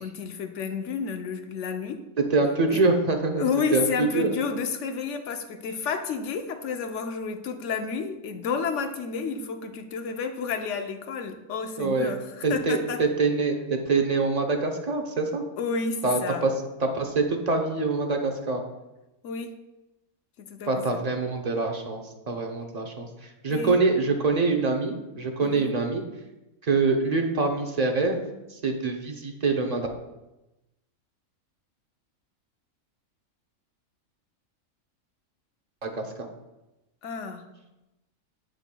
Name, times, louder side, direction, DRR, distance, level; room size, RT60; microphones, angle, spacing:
voice 1, 0.0-2.0 2.7-2.9 3.4-13.0 15.6-16.5 19.2-19.5 20.4-21.0 23.5-23.8 25.4-25.7 37.0-37.4, left 5 dB, 60° left, 6 dB, 1.0 m, -31 dB
voice 2, 2.3-3.4 3.7-4.4 11.8-12.1 12.4-15.4 16.0-16.5 16.8-18.6 20.7-26.0 26.6-28.2 28.5-29.9 35.8-36.3, right 3 dB, 40° right, 4 dB, 0.6 m, -25 dB
8.7 x 8.0 x 2.2 m, 0.98 s
omnidirectional pair, 1.5 m